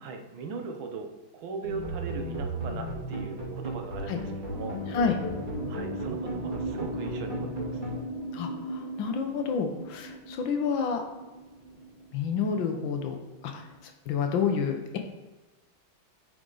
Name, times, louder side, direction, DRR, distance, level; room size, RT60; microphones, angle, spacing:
voice 1, 0.0-4.8 5.7-7.4 7.6-7.8, right 4 dB, 85° right, 5 dB, 1.7 m, -39 dB
sound 1, 1.6-8.0, right 1 dB, 25° right, 2.5 m, -35 dB
sound 2, 4.4-13.8, right 1 dB, 55° left, 1.9 m, -39 dB
voice 2, 8.3-11.0 12.1-13.2 13.4-13.6 14.1-15.0, left 6 dB, 75° left, 5 dB, 1.6 m, -29 dB
8.6 x 4.9 x 3.9 m, 1.2 s
omnidirectional pair, 2.2 m